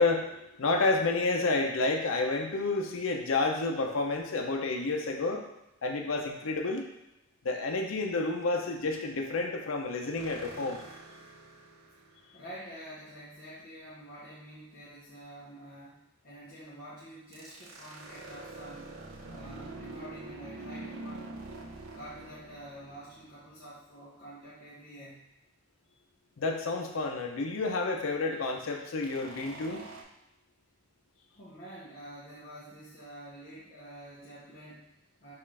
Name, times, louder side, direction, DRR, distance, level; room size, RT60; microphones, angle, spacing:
voice 1, 0.0-5.4 5.8-6.9 7.4-10.8 26.4-29.9, left 3 dB, 85° left, 3 dB, 0.6 m, -30 dB
sound 1, 10.2-12.3 17.3-23.7 29.0-30.0, right 2 dB, 85° right, 0.5 m, -45 dB
voice 2, 12.3-18.9 19.3-21.3 21.9-25.3 31.3-35.3, right 1 dB, 45° left, -9 dB, 0.8 m, -48 dB
5.5 x 2.5 x 3.3 m, 0.91 s
head